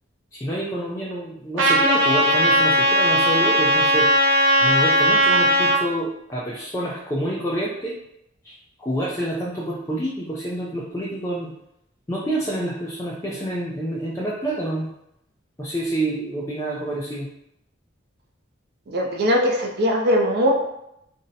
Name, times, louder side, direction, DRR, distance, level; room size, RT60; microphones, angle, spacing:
voice 1, 0.3-4.1 4.6-8.0 8.4-8.5 8.8-11.5 12.1-14.9 15.6-17.3, right 1 dB, 15° left, -5 dB, 0.4 m, -28 dB
Trumpet, 1.6-5.8, equal, 90° right, 0.7 m, -18 dB
voice 2, 18.9-20.5, equal, 55° right, 1 dB, 0.5 m, -20 dB
2.6 x 2.1 x 3.9 m, 0.81 s
head